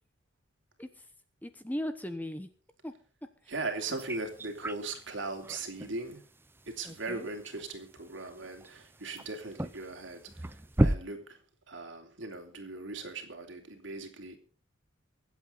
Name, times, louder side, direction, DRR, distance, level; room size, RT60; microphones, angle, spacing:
voice 1, 1.4-2.5 2.8-2.9 3.4-3.5 6.8-7.3, left 1 dB, 10° left, 10 dB, 0.9 m, -38 dB
voice 2, 3.5-6.3 6.7-11.4 11.7-14.4, right 3 dB, 65° right, 4 dB, 3.1 m, -39 dB
sound 1, 3.8-11.0, right 1 dB, 10° right, 0.5 m, -35 dB
23.5 x 8.4 x 4.1 m, 0.39 s
head